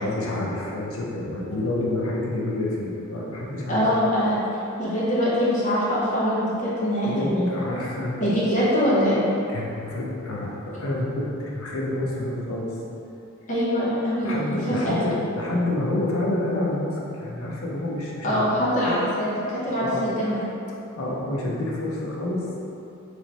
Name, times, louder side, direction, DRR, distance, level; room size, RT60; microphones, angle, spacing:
voice 1, 0.0-3.9 7.1-8.2 9.5-12.7 14.2-18.5 18.8-19.0 19.8-20.0 21.0-22.6, left 1 dB, 70° left, -3 dB, 0.7 m, -28 dB
voice 2, 3.7-4.4 4.8-7.5 8.2-9.2 13.5-14.3 14.7-15.0 18.2-20.4, equal, 35° left, -9 dB, 0.8 m, -23 dB
3.1 x 3.0 x 4.0 m, 2.8 s
head